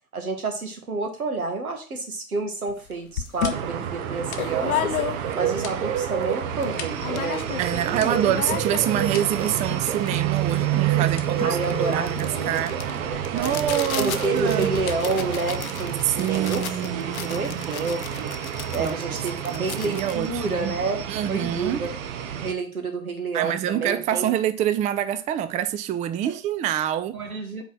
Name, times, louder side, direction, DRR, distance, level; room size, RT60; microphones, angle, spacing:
voice 1, 0.1-5.0 5.3-7.4 7.8-8.2 11.4-12.6 13.0-13.5 13.9-18.3 18.7-21.9 22.4-24.3 26.2-26.4 27.1-27.6, right 3 dB, 85° right, 1.6 m, -29 dB
sound 1, 2.7-2.8 3.2-5.5 6.0-6.1 6.2-6.7 7.0-7.8 8.1-21.2, left 10 dB, 75° left, 0.8 m, -34 dB
sound 2, 2.8-17.5, left 9 dB, 40° left, 1.0 m, -45 dB
sound 3, 3.5-22.5, right 10 dB, 65° right, 1.0 m, -28 dB
voice 2, 7.6-12.7 13.3-14.7 16.2-17.8 18.8-18.9 19.5-20.7 21.1-21.9 23.3-27.2, right 11 dB, 20° right, 0.4 m, -26 dB
5.3 x 4.3 x 6.1 m
figure-of-eight pair, 80°, 42 cm